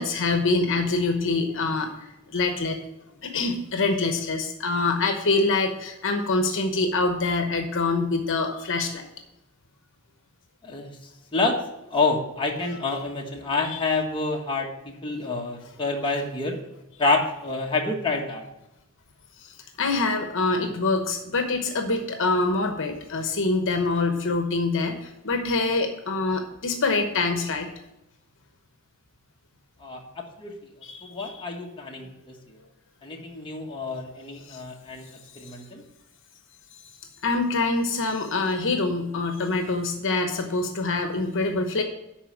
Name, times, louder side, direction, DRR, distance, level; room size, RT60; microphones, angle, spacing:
voice 1, 0.0-2.8 3.2-9.0 13.6-13.8 19.4-27.7 30.8-31.5 34.5-34.6 35.4-35.6 37.2-41.8, left 3 dB, 60° left, 5 dB, 1.0 m, -25 dB
voice 2, 11.9-14.7 15.0-16.6 17.0-18.4 29.8-30.0 30.4-30.5 31.0-32.3 33.0-35.1 35.4-35.8, left 3 dB, 25° left, -1 dB, 1.3 m, -27 dB
11.0 x 4.4 x 6.2 m, 0.89 s
head